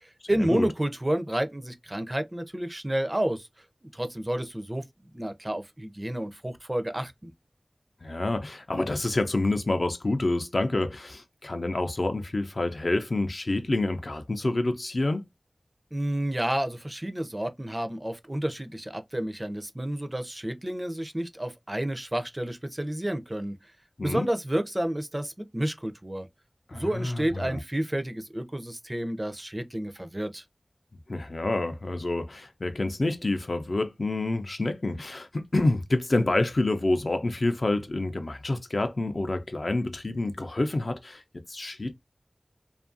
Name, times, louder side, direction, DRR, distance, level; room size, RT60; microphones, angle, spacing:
voice 1, 0.0-3.5 3.8-4.8 5.1-7.3 15.9-23.6 24.0-26.3 26.7-30.4, right 1 dB, 25° right, 0.4 m, -30 dB
voice 2, 8.0-15.2 24.0-24.3 26.7-27.6 31.1-41.9, left 2 dB, 65° left, 0.4 m, -28 dB
2.6 x 2.4 x 2.5 m
wide cardioid pair, 60°, 0 cm